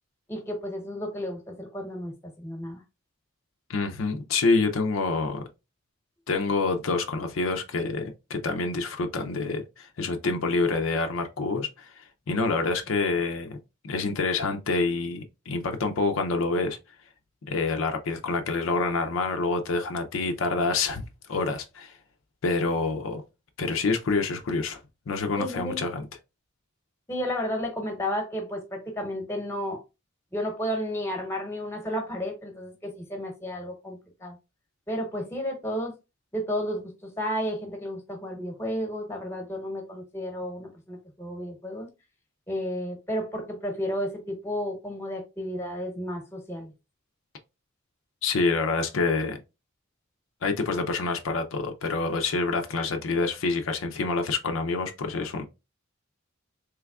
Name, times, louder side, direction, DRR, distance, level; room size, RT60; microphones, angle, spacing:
voice 1, 0.3-2.8 25.4-25.8 27.1-29.8 30.3-34.4 34.9-35.9 36.3-36.9 37.2-41.9 42.5-46.7, equal, 10° left, 0.9 m, -32 dB
voice 2, 3.7-5.4 6.3-13.6 13.8-16.8 17.5-22.0 22.4-23.2 23.6-24.8 25.1-26.1 48.2-49.4 50.4-55.4, left 3 dB, 70° left, 0.5 m, -27 dB
3.4 x 3.1 x 2.3 m
head